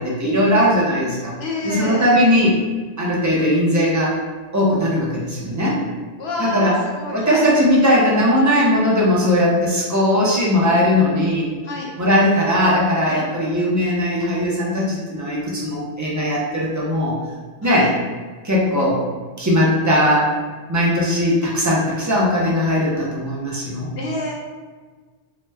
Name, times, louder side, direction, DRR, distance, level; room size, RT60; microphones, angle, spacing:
voice 1, 0.0-1.3 1.6-2.6 3.0-4.2 4.5-5.8 6.4-6.8 7.1-11.5 12.0-17.2 17.6-17.9 18.4-19.0 19.4-20.3 20.7-23.9, equal, 25° right, -5 dB, 0.4 m, -18 dB
voice 2, 1.4-2.2 6.2-7.4 11.6-11.9 13.1-13.2 17.6-17.9 24.0-24.3, left 2 dB, 65° left, -2 dB, 0.9 m, -28 dB
2.9 x 2.1 x 3.3 m, 1.4 s
omnidirectional pair, 1.2 m